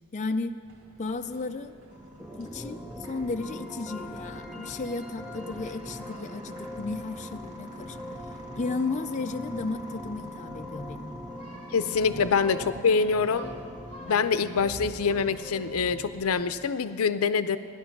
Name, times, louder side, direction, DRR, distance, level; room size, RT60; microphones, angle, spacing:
voice 1, 0.1-0.6 1.0-1.7 2.4-8.0 8.2-11.2 12.1-12.2, left 3 dB, 35° left, 7 dB, 0.4 m, -34 dB
sound 1, 0.6-15.7, right 2 dB, 70° right, 1.7 m, -51 dB
sound 2, 1.9-16.1, left 1 dB, 40° right, 1.4 m, -48 dB
sound 3, 2.2-16.7, equal, 5° right, 0.7 m, -42 dB
voice 2, 11.7-13.5 14.1-17.6, left 5 dB, 90° left, 13 dB, 0.5 m, -25 dB
15.5 x 11.0 x 5.9 m, 2.3 s
head